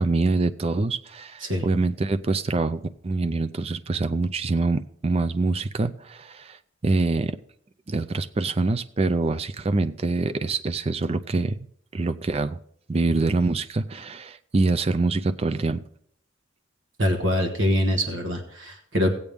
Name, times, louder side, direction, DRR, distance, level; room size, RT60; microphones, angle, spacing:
voice 1, 0.0-6.6 6.8-7.4 7.9-11.6 11.9-12.6 12.9-15.8, right 3 dB, 30° right, 10 dB, 0.4 m, -25 dB
voice 2, 17.0-19.1, equal, 70° right, 5 dB, 1.4 m, -24 dB
16.5 x 8.2 x 3.5 m, 0.67 s
head